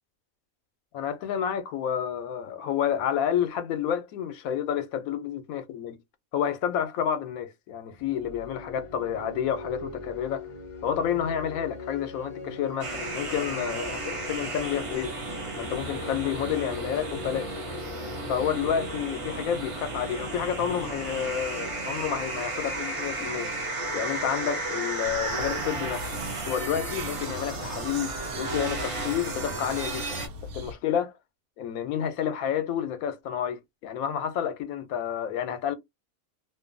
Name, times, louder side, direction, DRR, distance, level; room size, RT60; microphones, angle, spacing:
voice 1, 0.9-6.0 6.3-10.5 10.8-15.1 15.6-17.6 18.3-23.5 23.9-26.1 26.5-30.2 30.5-31.1 31.6-35.7, left 9 dB, 80° left, 1.0 m, -30 dB
sound 1, 8.0-20.6, left 4 dB, 35° left, 0.6 m, -41 dB
sound 2, 12.8-30.3, right 2 dB, 40° right, 0.5 m, -34 dB
sound 3, 25.0-30.7, left 1 dB, 90° right, 1.2 m, -41 dB
2.8 x 2.2 x 2.4 m
omnidirectional pair, 1.5 m